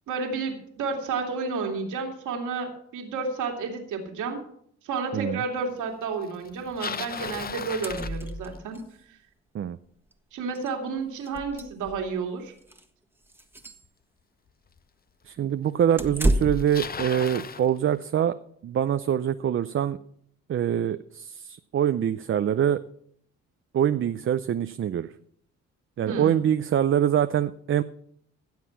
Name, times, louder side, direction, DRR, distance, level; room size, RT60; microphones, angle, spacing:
voice 1, 0.1-4.4 4.8-8.8 10.3-12.5 26.1-26.4, right 4 dB, 80° right, 3 dB, 2.6 m, -31 dB
Bicycle, 6.4-8.8 13.8-13.9 14.8-14.9 15.9-16.0 16.2-17.7, left 6 dB, 30° left, 0.7 m, -36 dB
sound 1, 6.8-7.0 7.3-7.4 7.6-8.8 10.1-10.2 10.6-10.7 11.2-12.1 12.6-12.8 13.3-13.8 16.0-16.8, right 1 dB, 5° right, 1.4 m, -30 dB
voice 2, 15.3-18.4 18.6-20.0 20.5-22.8 23.7-25.1 26.0-27.8, right 9 dB, 45° right, 11 dB, 0.5 m, -24 dB
16.0 x 7.4 x 5.9 m, 0.66 s
cardioid pair, 90°, 30 cm